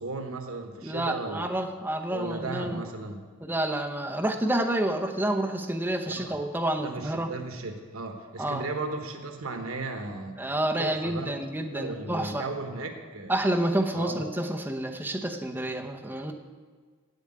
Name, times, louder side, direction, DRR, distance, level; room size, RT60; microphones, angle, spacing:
voice 1, 0.0-1.5 2.1-3.2 6.2-6.4 6.8-10.4 10.8-11.4 11.7-13.4 13.9-14.3, right 3 dB, 90° right, 5 dB, 1.1 m, -36 dB
voice 2, 0.8-2.8 3.4-7.3 8.4-8.7 10.4-12.4 13.3-16.3, right 1 dB, 10° right, 2 dB, 0.8 m, -29 dB
8.2 x 7.9 x 8.7 m, 1.6 s
head